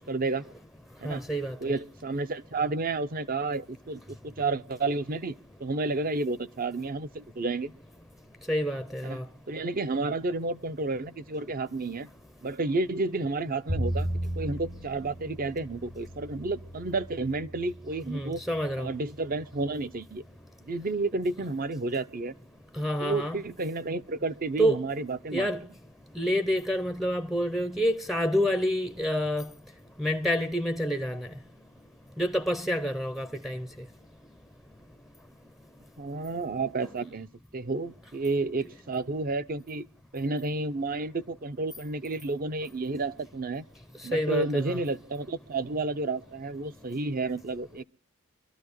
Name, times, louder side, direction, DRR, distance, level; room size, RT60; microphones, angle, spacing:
voice 1, 0.1-0.5 1.0-1.2 1.6-5.3 5.6-7.7 9.0-9.2 9.5-12.1 12.4-14.1 14.4-18.4 18.8-20.2 20.7-22.3 23.0-25.5 36.0-39.9 40.1-43.6 44.0-47.8, right 3 dB, 45° right, 0.7 m, -31 dB
voice 2, 1.0-1.6 8.5-9.2 18.1-18.9 22.8-23.4 24.6-24.8 25.3-25.6 26.2-29.5 30.0-31.3 32.2-33.7 44.1-44.8, equal, ahead, 0.6 m, -28 dB
Bowed string instrument, 13.7-19.8, right 1 dB, 70° right, 7.6 m, -36 dB
25.0 x 13.0 x 3.0 m
head